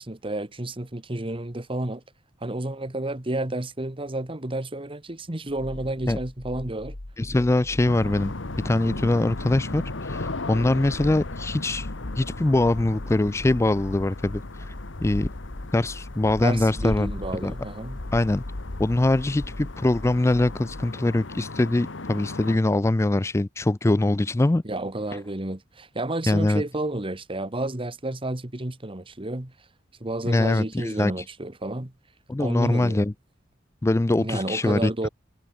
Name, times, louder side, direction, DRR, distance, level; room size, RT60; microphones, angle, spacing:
voice 1, 0.0-2.0 2.4-7.0 16.4-18.0 24.6-29.5 30.0-31.9 32.4-33.0 34.2-35.1, right 1 dB, 30° right, 1.6 m, -31 dB
sound 1, 6.8-20.8, left 1 dB, 70° left, 1.8 m, -40 dB
voice 2, 7.2-8.3 8.6-11.9 12.2-14.7 15.0-15.3 15.7-17.1 17.4-17.5 18.1-18.4 18.8-24.6 26.3-26.6 30.2-31.2 32.3-33.1 33.8-35.1, left 2 dB, 15° left, 0.4 m, -23 dB
sound 2, 7.9-22.6, left 2 dB, 85° left, 1.4 m, -36 dB
head